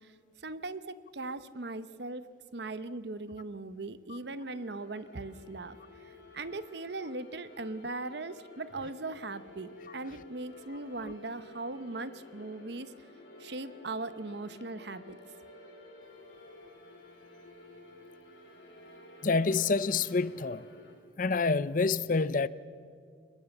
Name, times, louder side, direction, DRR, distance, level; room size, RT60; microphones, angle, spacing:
voice 1, 0.0-12.9 13.4-15.2, right 2 dB, 60° right, 0.9 m, -39 dB
sound 1, 4.2-20.9, left 2 dB, 65° left, 5.8 m, -53 dB
voice 2, 19.2-20.7 21.2-22.5, left 4 dB, 45° left, 0.6 m, -27 dB
23.0 x 20.5 x 7.1 m
head